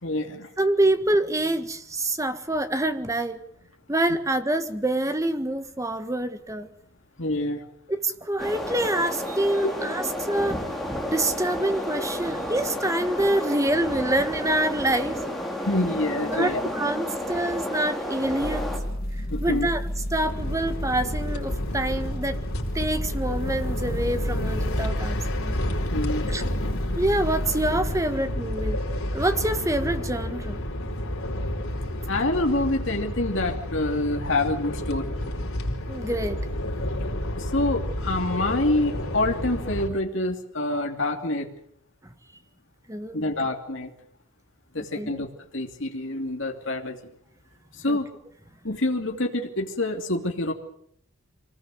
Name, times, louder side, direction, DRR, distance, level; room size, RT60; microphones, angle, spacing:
voice 1, 0.0-0.5 7.2-7.6 9.6-9.7 11.9-12.0 15.7-16.9 19.3-19.7 25.7-26.3 32.1-35.2 36.8-36.9 37.4-41.5 43.1-43.9 44.7-45.3 45.5-47.0 47.7-48.1 48.6-50.5, left 2 dB, 60° left, 2 dB, 2.9 m, -27 dB
voice 2, 0.6-3.4 3.9-6.7 7.9-10.6 11.1-15.2 16.3-18.7 19.1-19.8 20.1-22.4 22.7-25.6 26.3-26.4 26.9-28.8 29.1-30.6 35.9-36.4 42.9-43.2 44.8-45.2 47.9-48.0, right 1 dB, 15° right, 9 dB, 1.5 m, -26 dB
sound 1, 8.4-18.8, left 1 dB, ahead, 4.3 m, -31 dB
sound 2, 18.4-28.0, equal, 45° left, 2.2 m, -31 dB
sound 3, 20.2-39.9, left 1 dB, 80° left, 4.9 m, -31 dB
25.0 x 19.5 x 7.9 m, 0.68 s
head